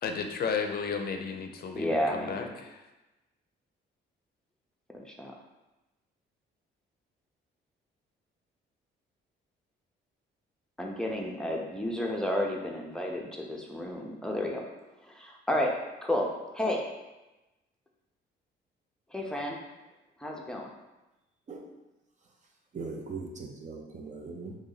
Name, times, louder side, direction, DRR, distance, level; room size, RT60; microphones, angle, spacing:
voice 1, 0.0-2.8, left 5 dB, 50° left, 5 dB, 0.5 m, -33 dB
voice 2, 1.7-2.5 4.9-5.3 10.8-14.6 15.0-15.7 16.0-16.3 16.5-16.8 19.1-19.6 20.2-20.7, left 1 dB, 5° left, -1 dB, 0.6 m, -31 dB
voice 3, 22.7-24.6, right 4 dB, 35° right, 1 dB, 0.6 m, -40 dB
3.0 x 2.6 x 3.9 m, 1.0 s
cardioid pair, 90°, 20 cm